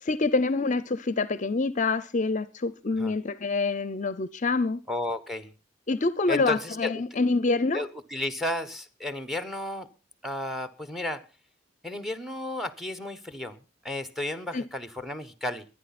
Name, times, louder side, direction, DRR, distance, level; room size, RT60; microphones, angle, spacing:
voice 1, 0.0-4.8 5.9-7.8 14.5-14.6, left 3 dB, 40° left, 0.6 m, -26 dB
voice 2, 4.9-5.5 6.3-6.9 7.7-9.9 10.2-11.2 11.8-13.6 13.8-15.6, left 1 dB, ahead, 1.1 m, -33 dB
23.5 x 9.4 x 4.2 m
head